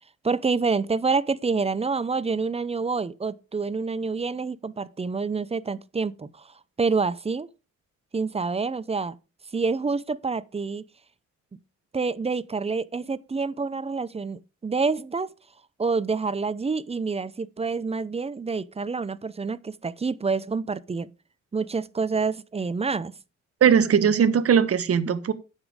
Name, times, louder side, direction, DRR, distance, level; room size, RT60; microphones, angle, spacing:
voice 1, 0.2-6.5 6.8-7.5 8.1-9.2 9.5-10.8 11.9-15.3 15.8-21.1 21.5-23.1, right 4 dB, 20° right, 0.6 m, -27 dB
voice 2, 23.6-25.3, right 7 dB, 50° right, 1.2 m, -19 dB
9.7 x 7.2 x 5.0 m
cardioid pair, 90°, 30 cm